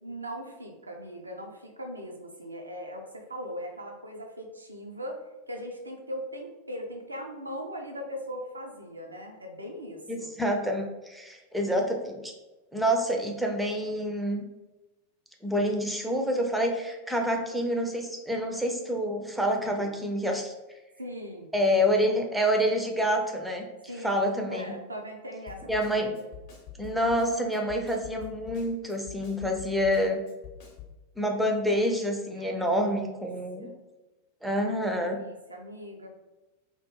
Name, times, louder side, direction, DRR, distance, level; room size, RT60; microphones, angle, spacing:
voice 1, 0.0-10.3 19.7-19.9 21.0-21.5 23.9-26.2 32.4-33.0 33.6-33.8 34.5-34.7 35.0-36.1, equal, 80° right, 2 dB, 0.4 m, -40 dB
voice 2, 10.1-12.2 12.7-14.4 15.4-20.5 21.5-23.6 24.0-24.7 25.7-26.1 26.8-30.2 31.2-33.7 34.4-35.2, equal, ahead, 1 dB, 0.4 m, -27 dB
Snare drum, 25.5-31.0, left 8 dB, 45° left, 0.7 m, -46 dB
2.2 x 2.0 x 3.1 m, 1.1 s
figure-of-eight pair, 90°, 0 cm